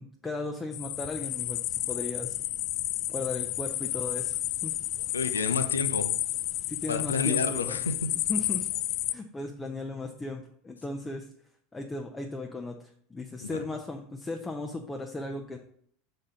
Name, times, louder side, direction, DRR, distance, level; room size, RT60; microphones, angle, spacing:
voice 1, 0.0-2.4 3.1-4.7 6.7-7.8 8.3-8.7 9.1-11.3 11.7-15.6, left 2 dB, 15° left, 3 dB, 0.8 m, -36 dB
sound 1, 0.7-9.1, left 15 dB, 55° left, 0.3 m, -31 dB
voice 2, 5.1-6.1 6.9-8.1 13.4-13.6, left 4 dB, 85° left, 9 dB, 0.6 m, -30 dB
6.4 x 4.3 x 5.0 m, 0.63 s
hypercardioid pair, 80°, 0 cm